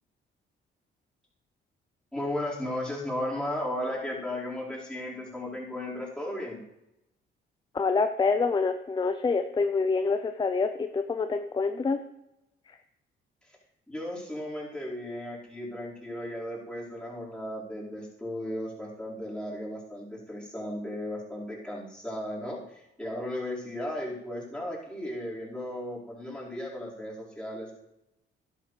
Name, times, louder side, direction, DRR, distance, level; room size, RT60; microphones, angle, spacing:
voice 1, 2.1-6.6 13.9-27.7, left 1 dB, 5° left, -7 dB, 4.8 m, -35 dB
voice 2, 7.7-12.0, left 4 dB, 25° left, 9 dB, 0.6 m, -26 dB
12.0 x 11.0 x 3.3 m, 0.89 s
cardioid pair, 90°, 20 cm